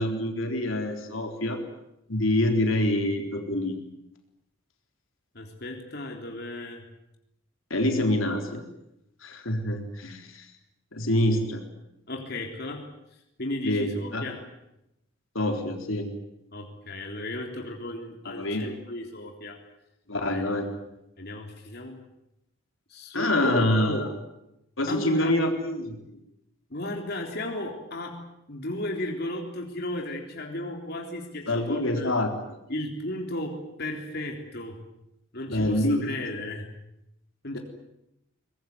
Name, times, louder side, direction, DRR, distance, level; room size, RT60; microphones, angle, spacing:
voice 1, 0.0-1.6 2.1-3.8 7.7-8.6 9.2-10.5 10.9-11.6 13.6-14.2 15.3-16.1 18.3-18.7 20.1-20.7 23.1-24.1 24.8-26.2 31.5-32.6 35.5-36.2 37.5-37.6, left 1 dB, 70° left, 3 dB, 3.9 m, -26 dB
voice 2, 5.3-6.9 12.1-12.8 13.4-14.4 16.5-19.6 20.3-20.5 21.2-22.0 22.9-24.1 24.9-25.4 26.7-28.2 28.5-32.1 32.7-34.8 35.3-36.7 37.4-37.6, left 1 dB, 50° left, 1 dB, 3.6 m, -34 dB
23.0 x 21.0 x 9.6 m, 0.85 s
head